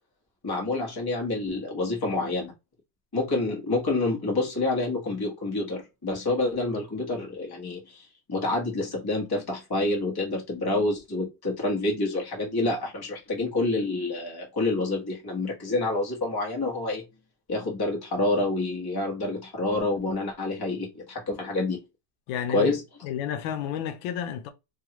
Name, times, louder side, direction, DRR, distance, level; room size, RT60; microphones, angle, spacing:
voice 1, 0.4-2.5 3.1-17.0 17.5-21.8 22.5-22.8, left 2 dB, 15° left, 0.8 m, -28 dB
voice 2, 22.3-22.7 23.0-24.5, left 9 dB, 85° left, 1.4 m, -31 dB
3.4 x 2.3 x 2.9 m
omnidirectional pair, 2.1 m